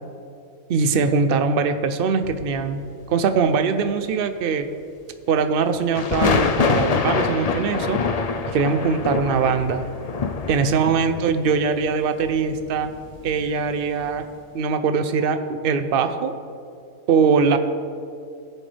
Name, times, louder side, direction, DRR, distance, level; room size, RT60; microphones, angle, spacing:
voice 1, 0.7-4.7 5.3-8.0 8.5-9.8 10.5-12.9 13.2-14.2 14.5-16.3 17.1-17.6, right 5 dB, 55° right, 9 dB, 0.7 m, -21 dB
sound 1, 2.2-2.9 5.9-13.7 14.0-14.2, left 5 dB, 70° left, 0.3 m, -25 dB
16.5 x 7.4 x 3.4 m, 2.4 s
omnidirectional pair, 1.4 m